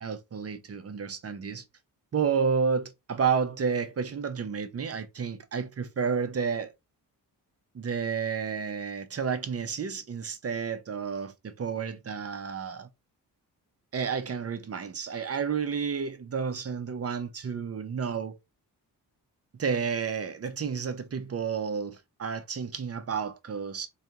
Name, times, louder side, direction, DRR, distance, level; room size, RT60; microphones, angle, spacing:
voice 1, 0.0-1.6 2.1-6.7 7.7-12.9 13.9-18.4 19.6-23.9, right 6 dB, 35° right, 0.6 m, -31 dB
3.4 x 2.4 x 2.7 m
cardioid pair, 60°, 41 cm